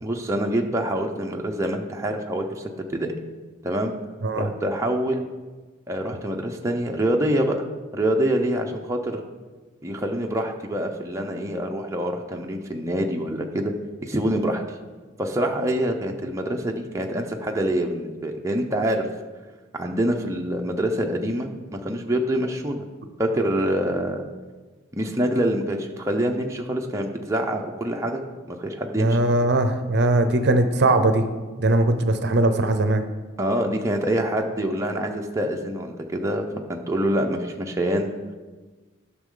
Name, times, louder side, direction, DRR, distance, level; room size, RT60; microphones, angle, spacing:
voice 1, 0.0-3.1 3.6-3.9 4.4-5.2 5.9-7.7 7.9-9.2 9.8-13.7 14.0-14.6 15.2-19.1 19.7-22.8 23.2-24.2 24.9-28.2 28.5-29.2 33.4-36.4 36.7-38.1, right 1 dB, 15° right, 2 dB, 0.6 m, -25 dB
voice 2, 29.0-31.2 31.6-33.0, right 2 dB, 55° right, 9 dB, 0.6 m, -20 dB
12.5 x 6.2 x 3.8 m, 1.3 s
head